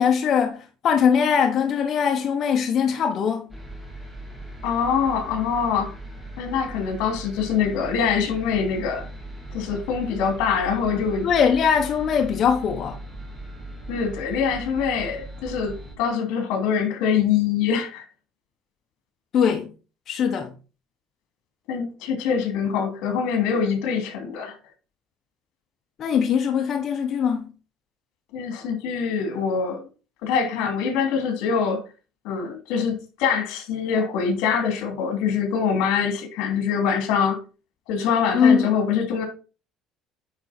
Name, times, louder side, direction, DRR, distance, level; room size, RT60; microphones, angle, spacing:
voice 1, 0.0-3.5 11.2-13.0 19.3-19.7 20.1-20.5 26.0-27.4 38.3-38.7, left 7 dB, 35° left, 0.9 m, -21 dB
sound 1, 3.5-15.9, right 1 dB, ahead, 1.9 m, -39 dB
voice 2, 4.6-6.0 6.4-9.1 9.5-11.3 13.9-18.0 21.7-24.6 28.3-29.9 30.2-31.8 32.2-37.4 37.9-39.3, left 6 dB, 75° left, 2.8 m, -24 dB
9.6 x 4.2 x 4.3 m
cardioid pair, 175°, 0 cm